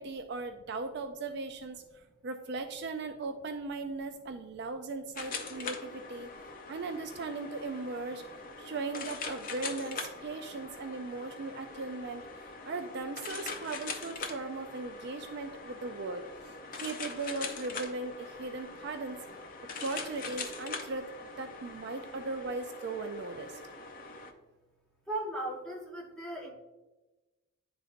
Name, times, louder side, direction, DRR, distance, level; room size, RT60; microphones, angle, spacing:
voice 1, 0.0-6.3 6.7-8.2 8.6-16.3 16.8-19.2 19.8-21.1 21.4-23.6, right 3 dB, 50° right, 7 dB, 0.3 m, -38 dB
sound 1, 5.1-24.3, left 4 dB, 40° left, 0.5 m, -43 dB
voice 2, 25.1-26.5, right 2 dB, 5° left, -4 dB, 1.0 m, -37 dB
10.0 x 3.9 x 2.5 m, 1.1 s
head